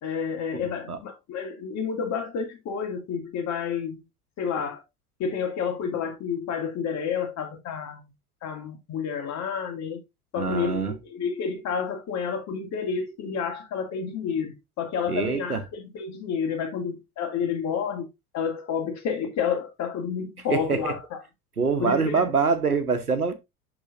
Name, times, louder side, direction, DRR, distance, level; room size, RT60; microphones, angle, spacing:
voice 1, 0.0-4.0 4.4-4.8 5.2-8.0 8.4-10.0 10.3-18.1 18.3-21.2 21.8-22.2, left 6 dB, 40° left, 2.1 m, -30 dB
voice 2, 0.6-1.0 10.4-10.9 15.1-15.6 20.5-20.9 21.6-23.3, right 5 dB, 90° right, 1.0 m, -25 dB
11.0 x 3.9 x 2.6 m
figure-of-eight pair, 75°, 43 cm